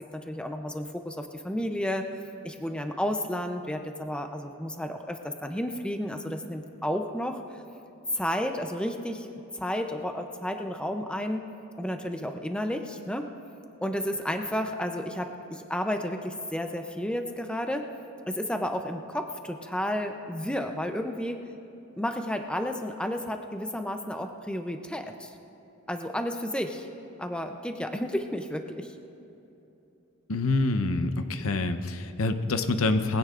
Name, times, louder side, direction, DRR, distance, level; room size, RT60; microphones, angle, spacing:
voice 1, 0.1-2.1 2.4-7.4 8.1-9.3 9.5-11.4 11.8-13.3 13.8-17.8 18.3-21.4 22.0-25.3 25.9-26.9 27.2-28.9, equal, 5° left, 5 dB, 0.5 m, -32 dB
voice 2, 30.3-33.2, left 2 dB, 80° left, 8 dB, 0.7 m, -26 dB
21.5 x 16.0 x 2.5 m, 3.0 s
head